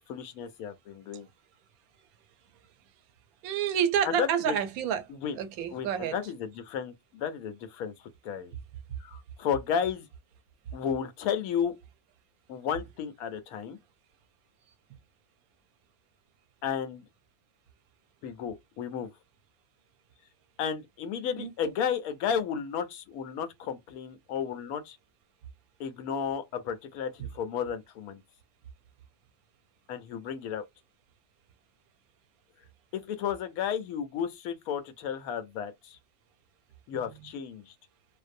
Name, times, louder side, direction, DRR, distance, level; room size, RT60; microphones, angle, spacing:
voice 1, 0.1-1.3 4.1-4.5 5.1-5.4 5.7-8.5 9.0-10.1 10.7-11.7 12.5-13.8 16.6-17.0 18.2-19.1 20.6-25.0 25.8-28.2 29.9-30.7 32.9-36.0 36.9-37.7, left 7 dB, 90° left, 1.1 m, -33 dB
voice 2, 3.4-6.2 21.4-21.7 27.2-27.3 36.9-37.3, right 9 dB, 85° right, 1.0 m, -30 dB
2.6 x 2.0 x 2.5 m
omnidirectional pair, 1.5 m